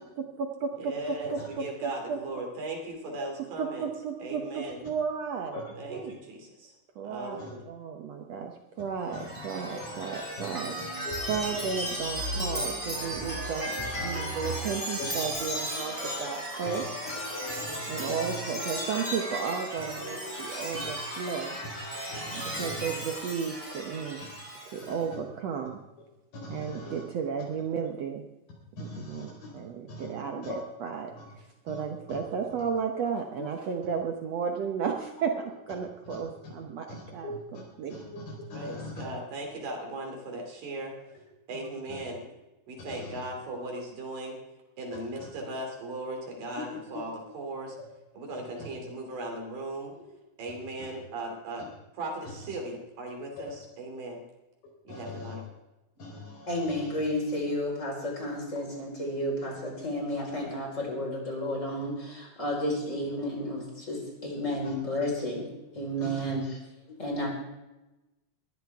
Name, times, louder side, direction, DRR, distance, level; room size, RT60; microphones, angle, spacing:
voice 1, 0.2-2.2 3.6-5.6 5.9-6.1 7.0-8.5 8.8-10.7 11.3-16.9 17.9-21.5 22.3-24.2 24.7-25.8 26.5-28.2 28.8-38.0, right 6 dB, 65° right, 3 dB, 1.8 m, -34 dB
voice 2, 0.8-3.9 4.2-4.8 5.8-6.7 7.0-7.7 38.5-41.0 41.5-42.2 42.7-44.4 44.8-47.8 48.1-49.9 50.4-51.7 51.9-54.2 54.8-55.4, right 2 dB, 85° right, 1 dB, 4.6 m, -38 dB
Chime, 9.1-24.9, equal, 10° right, 5.9 m, -35 dB
voice 3, 10.8-11.2 11.5-11.6 14.3-14.5 15.0-15.1 17.6-18.4 20.7-20.9 22.1-22.8 24.9-25.0 26.4-27.0 28.8-29.5 29.9-30.1 30.4-30.6 31.7-31.8 32.1-32.2 33.4-33.5 36.9-37.4 37.9-38.2 38.5-39.1 41.9-42.0 42.9-43.2 45.1-45.3 46.6-47.0 53.4-53.5 54.9-55.3 56.0-57.0 61.1-61.5 64.7-64.8 66.0-66.3, left 2 dB, 80° left, -3 dB, 5.8 m, -41 dB
voice 4, 56.5-65.4 65.7-66.6 67.0-67.3, equal, 20° left, -1 dB, 4.8 m, -32 dB
21.5 x 14.0 x 3.6 m, 1.0 s
omnidirectional pair, 3.8 m